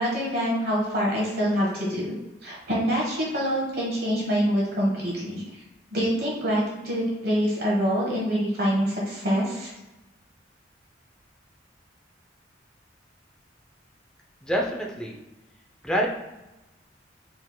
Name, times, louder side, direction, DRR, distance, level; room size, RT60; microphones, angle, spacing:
voice 1, 0.0-2.1 2.4-5.4 5.9-9.7, equal, 55° right, -4 dB, 1.3 m, -25 dB
voice 2, 14.4-15.2 15.8-16.1, equal, 5° left, -1 dB, 0.5 m, -26 dB
4.2 x 3.7 x 2.2 m, 1.0 s
head